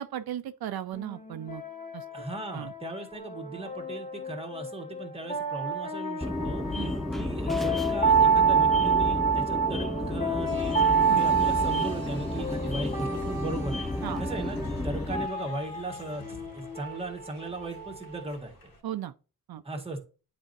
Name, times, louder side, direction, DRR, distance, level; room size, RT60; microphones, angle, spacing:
voice 1, 0.0-1.6 1.9-2.2 2.5-2.7 6.7-6.9 11.1-11.2 14.0-14.2 18.8-19.1 19.5-19.6, right 11 dB, 80° right, 0.6 m, -36 dB
sound 1, 0.9-18.4, right 5 dB, 20° left, 1.9 m, -29 dB
voice 2, 2.1-6.6 7.1-10.7 11.1-13.8 14.2-14.6 14.8-16.2 16.5-18.7 19.6-20.0, right 2 dB, 15° right, 1.7 m, -37 dB
sound 2, 6.2-15.3, left 1 dB, ahead, 0.6 m, -32 dB
Applause, 10.4-18.8, left 1 dB, 65° left, 2.8 m, -46 dB
9.9 x 4.3 x 2.7 m
wide cardioid pair, 110°, 36 cm